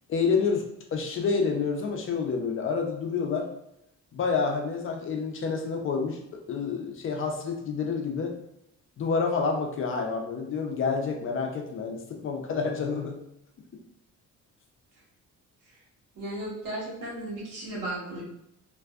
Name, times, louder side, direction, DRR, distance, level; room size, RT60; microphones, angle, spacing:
voice 1, 0.1-0.6 0.9-3.5 4.1-6.2 6.5-8.3 9.0-13.2, left 5 dB, 40° left, 2 dB, 0.4 m, -28 dB
voice 2, 16.1-18.2, right 1 dB, 85° right, -4 dB, 1.2 m, -35 dB
2.5 x 2.2 x 2.3 m, 0.80 s
cardioid pair, 135°, 31 cm